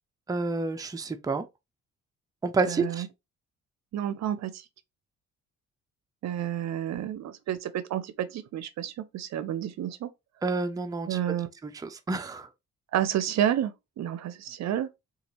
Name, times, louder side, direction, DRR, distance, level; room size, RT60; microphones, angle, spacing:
voice 1, 0.3-1.4 2.4-3.1 10.4-11.2 11.6-12.5, right 3 dB, 10° right, 0.5 m, -29 dB
voice 2, 2.7-3.1 3.9-4.6 6.2-10.1 11.1-11.5 12.9-14.9, right 10 dB, 65° right, 0.6 m, -30 dB
4.1 x 2.4 x 2.9 m
cardioid pair, 90°, 30 cm